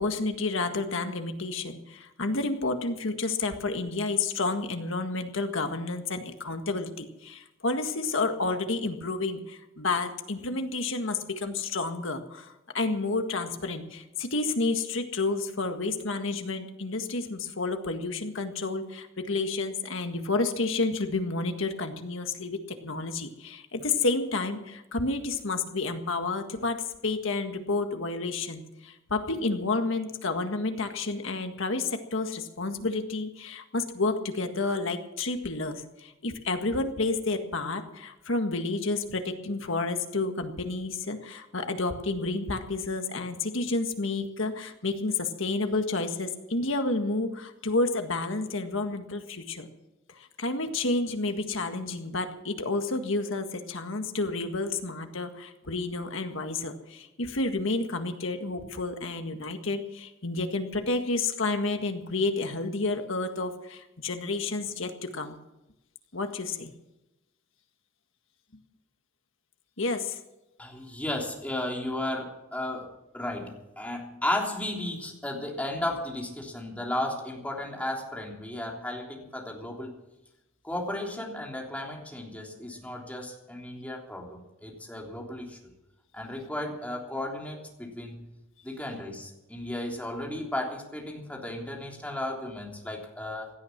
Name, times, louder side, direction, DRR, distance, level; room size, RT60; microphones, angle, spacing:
voice 1, 0.0-49.7 50.4-65.4 66.1-66.7 69.8-70.2, left 3 dB, 65° left, 6 dB, 1.8 m, -30 dB
voice 2, 70.6-72.9 73.1-80.0 80.6-85.6 86.1-88.2 88.6-93.5, left 1 dB, 5° left, 0 dB, 3.4 m, -34 dB
17.5 x 12.5 x 6.0 m, 0.95 s
head